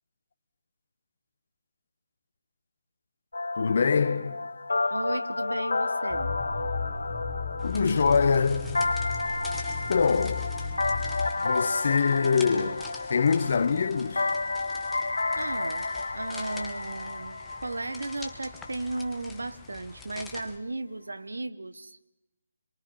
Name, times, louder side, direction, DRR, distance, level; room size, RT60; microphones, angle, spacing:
sound 1, 3.3-19.1, left 3 dB, 85° left, 1.0 m, -31 dB
voice 1, 3.6-4.5 7.6-8.8 9.9-10.5 11.4-14.3, left 5 dB, 60° left, 1.4 m, -24 dB
voice 2, 4.9-6.3 15.3-22.0, right 2 dB, 90° right, 1.4 m, -35 dB
sound 2, 6.1-11.2, left 4 dB, 15° right, 7.9 m, -35 dB
sound 3, 7.6-20.6, left 4 dB, 5° left, 1.5 m, -46 dB
27.5 x 23.0 x 5.7 m
figure-of-eight pair, 155°, 0 cm